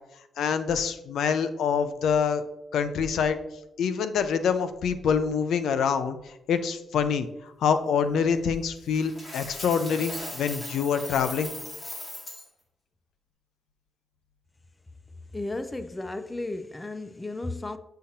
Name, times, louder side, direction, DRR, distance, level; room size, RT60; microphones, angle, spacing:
voice 1, 0.4-2.4 2.7-3.4 3.8-6.2 6.5-7.3 7.6-11.5, left 6 dB, 80° left, 0.5 m, -25 dB
Coin (dropping), 8.9-12.4, left 1 dB, 30° left, 2.2 m, -38 dB
voice 2, 15.3-17.8, left 2 dB, 15° left, 0.3 m, -34 dB
8.7 x 5.6 x 2.8 m
wide cardioid pair, 165°, 0 cm